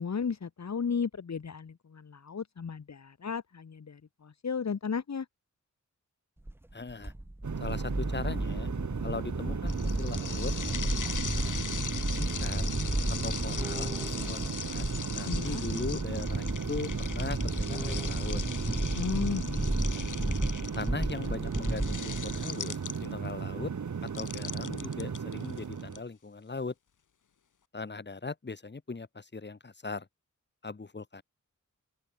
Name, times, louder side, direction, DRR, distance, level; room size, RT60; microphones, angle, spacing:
voice 1, 0.0-5.3 15.3-15.6 18.9-19.7 20.0-20.3, left 6 dB, 60° left, 3.3 m, -34 dB
sound 1, 6.5-22.4, right 1 dB, 5° right, 0.7 m, -33 dB
voice 2, 6.7-7.1 7.6-8.7 9.0-10.5 11.2-11.7 12.2-12.7 13.2-18.4 20.8-23.7 24.1-26.7 27.7-30.1 30.6-31.2, left 3 dB, 35° left, 5.9 m, -39 dB
sound 2, 7.4-26.0, right 6 dB, 70° right, 3.8 m, -36 dB
sound 3, 9.7-23.3 24.1-26.0, left 7 dB, 80° left, 2.1 m, -40 dB
open air
wide cardioid pair, 155°, 30 cm